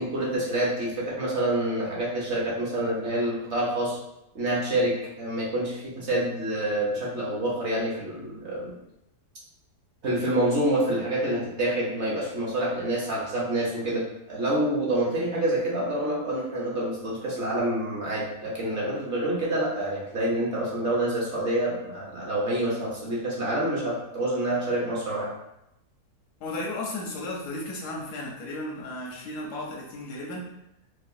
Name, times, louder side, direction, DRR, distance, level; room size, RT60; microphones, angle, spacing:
voice 1, 0.0-4.0 4.3-8.7 10.0-25.3, right 1 dB, 50° right, -5 dB, 1.0 m, -27 dB
voice 2, 26.4-30.5, left 2 dB, 85° left, -1 dB, 1.3 m, -34 dB
4.7 x 2.1 x 2.5 m, 0.84 s
omnidirectional pair, 1.6 m